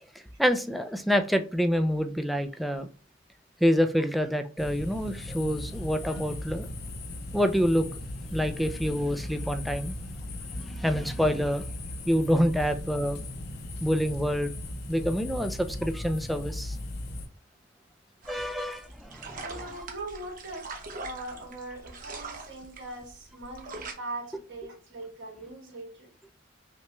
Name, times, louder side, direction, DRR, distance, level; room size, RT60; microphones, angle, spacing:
voice 1, 0.4-2.9 3.6-6.7 7.3-7.9 8.3-10.0 10.5-11.7 12.1-13.2 13.8-14.5 14.9-16.8 18.3-19.6, equal, ahead, 0.3 m, -27 dB
sound 1, 4.6-17.3, left 1 dB, 55° left, 0.6 m, -37 dB
sound 2, 18.2-23.9, right 3 dB, 45° right, 0.9 m, -42 dB
voice 2, 19.3-26.1, right 2 dB, 60° right, 1.9 m, -41 dB
5.7 x 2.2 x 3.0 m
head